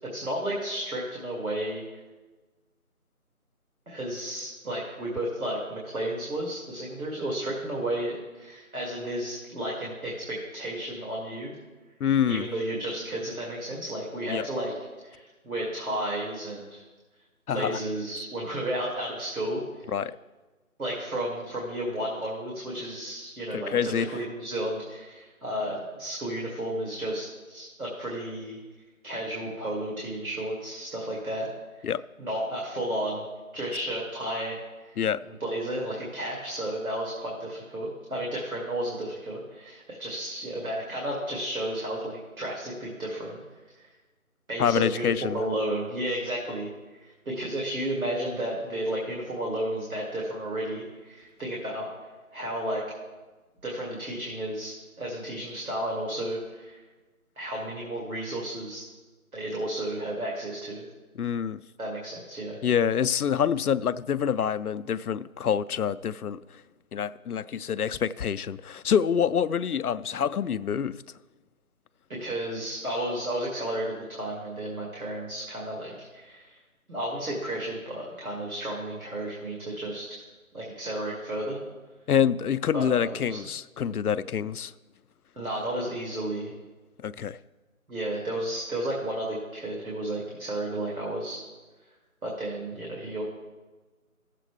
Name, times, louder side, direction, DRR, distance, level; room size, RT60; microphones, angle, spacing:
voice 1, 0.0-1.8 3.9-11.6 12.3-14.7 15.0-16.8 17.5-20.0 20.8-28.6 29.0-31.5 31.7-31.9 32.2-33.3 33.5-43.4 43.7-43.9 44.5-46.7 47.0-51.9 52.3-52.8 53.6-56.8 57.4-58.8 59.3-60.8 61.8-62.6 72.1-76.6 76.9-80.1 80.5-81.6 82.7-83.4 85.4-86.5 87.9-91.4 92.2-93.2, right 1 dB, 70° right, 2.5 m, -32 dB
voice 2, 12.0-12.5 14.3-14.5 17.5-17.8 19.9-20.2 23.5-24.2 31.8-32.0 35.0-35.2 44.6-45.4 61.2-61.6 62.6-66.6 66.9-71.0 82.1-84.7 87.0-87.4, left 8 dB, 90° left, 0.5 m, -26 dB
15.5 x 7.6 x 3.3 m
figure-of-eight pair, 175°, 44 cm